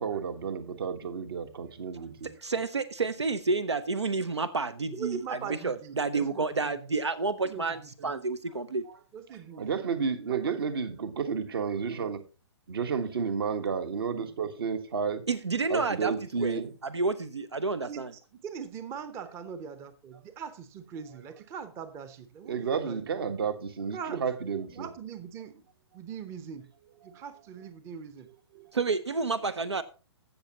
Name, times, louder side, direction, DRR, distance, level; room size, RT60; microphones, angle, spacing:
voice 1, 0.0-2.3 9.5-12.2 12.7-15.2 15.7-16.7 22.4-24.9 28.5-28.7, right 6 dB, 55° right, 1.3 m, -31 dB
voice 2, 2.2-5.4 5.6-8.8 15.3-16.1 16.4-18.1 28.7-29.8, right 4 dB, 75° right, 0.6 m, -30 dB
voice 3, 4.9-6.8 7.4-8.1 9.1-9.7 10.1-10.6 10.9-11.0 17.8-23.1 23.9-24.2 24.7-25.7 25.9-26.7 27.0-28.3, right 6 dB, 20° right, 0.7 m, -41 dB
15.5 x 6.6 x 2.9 m
figure-of-eight pair, 120°, 14 cm